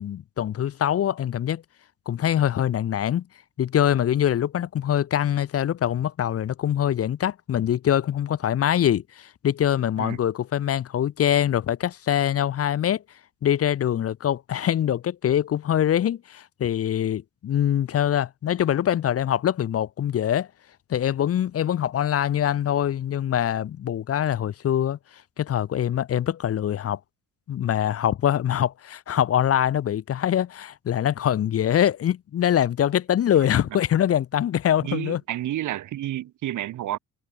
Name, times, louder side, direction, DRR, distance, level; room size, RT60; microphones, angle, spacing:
voice 1, 0.0-1.6 2.1-3.2 3.6-13.0 13.4-20.5 20.9-25.0 25.4-27.0 27.5-35.2, left 10 dB, 50° left, 0.7 m, -24 dB
voice 2, 34.8-37.0, right 13 dB, 75° right, 1.8 m, -30 dB
cardioid pair, 80°, 31 cm